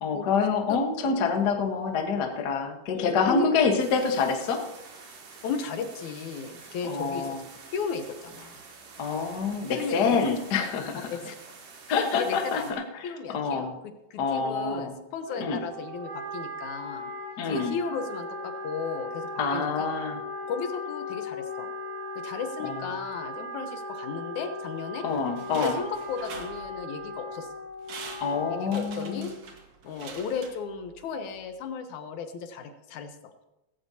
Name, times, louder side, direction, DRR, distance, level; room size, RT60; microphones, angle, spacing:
voice 1, 0.0-4.6 6.8-7.4 9.0-11.1 11.9-12.6 13.3-13.8 14.2-14.9 15.4-15.6 17.4-17.7 19.4-20.2 22.6-22.8 25.0-25.8 28.2-29.3, left 5 dB, 50° left, 3 dB, 1.3 m, -26 dB
voice 2, 2.9-3.7 5.4-7.4 7.7-8.6 9.8-10.4 11.1-11.4 11.9-17.1 17.4-19.9 20.5-21.7 22.2-25.1 25.5-27.5 28.5-29.4 29.8-33.3, left 5 dB, 75° left, 7 dB, 2.3 m, -35 dB
sound 1, 3.8-12.7, right 4 dB, 90° right, 3.6 m, -48 dB
Wind instrument woodwind instrument, 15.2-29.3, left 1 dB, 10° right, 5.4 m, -38 dB
sound 2, 25.1-27.1 27.5-27.6 27.8-31.0 31.4-31.5, right 5 dB, 60° right, 2.7 m, -44 dB
16.5 x 15.5 x 2.8 m, 0.98 s
omnidirectional pair, 3.5 m